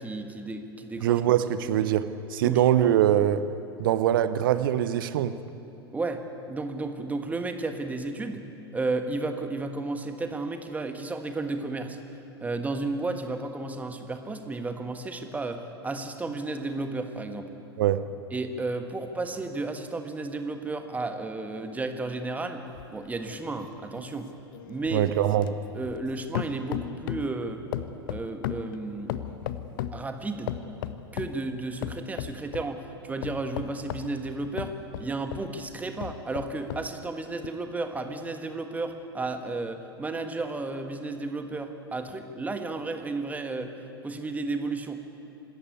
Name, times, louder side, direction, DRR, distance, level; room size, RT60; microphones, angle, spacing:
voice 1, 0.0-1.2 2.4-2.6 5.9-8.5 8.7-12.0 12.4-17.5 18.3-22.6 22.9-24.3 24.7-25.1 25.7-27.6 28.1-29.2 29.9-30.5 31.1-43.7 44.0-45.0, right 3 dB, 10° right, 6 dB, 1.5 m, -33 dB
voice 2, 1.0-2.0 2.3-3.4 3.8-5.3 17.8-18.0 24.9-25.5, right 11 dB, 55° right, 13 dB, 0.8 m, -23 dB
sound 1, 22.7-26.1 26.4-27.4 27.7-30.0 30.5-31.4 31.8-32.7 33.2-35.5 36.0-36.9 37.4-37.5, left 11 dB, 55° left, 0.8 m, -36 dB
26.0 x 13.5 x 8.5 m, 2.9 s
figure-of-eight pair, 85°, 13 cm